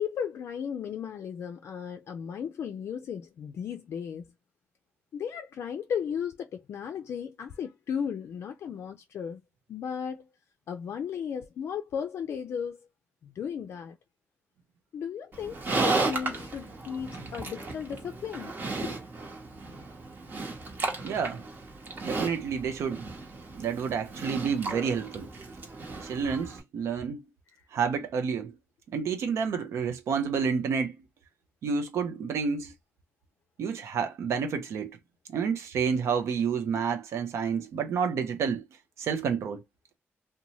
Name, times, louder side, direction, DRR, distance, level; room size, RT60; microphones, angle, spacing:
voice 1, 0.0-4.3 5.1-9.4 9.7-10.3 10.7-12.8 13.2-14.0 14.9-18.6 18.8-19.0, left 7 dB, 70° left, 0.3 m, -35 dB
Livestock farm animals working animals, 15.3-26.6, right 3 dB, 45° right, 1.0 m, -34 dB
voice 2, 21.0-21.4 22.0-23.1 23.5-25.3 26.0-27.2 27.7-28.5 28.9-30.9 31.6-32.7 33.6-35.0 35.3-38.7 39.0-39.6, right 6 dB, 80° right, 0.5 m, -29 dB
2.6 x 2.2 x 2.9 m
cardioid pair, 85°, 5 cm